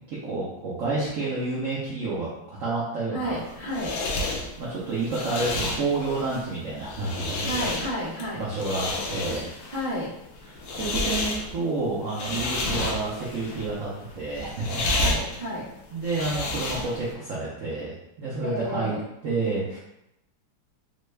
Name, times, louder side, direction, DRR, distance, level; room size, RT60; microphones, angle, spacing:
voice 1, 0.1-3.4 4.6-7.5 8.3-9.5 10.8-14.8 15.9-19.0 19.2-19.8, right 3 dB, 85° right, -7 dB, 0.6 m, -29 dB
voice 2, 3.1-4.0 7.4-8.4 9.7-10.1 15.0-15.7 18.4-19.0, equal, 45° right, -11 dB, 0.6 m, -31 dB
sound 1, 3.3-17.1, left 2 dB, 80° left, 0.8 m, -31 dB
3.5 x 2.2 x 3.2 m, 0.84 s
omnidirectional pair, 2.2 m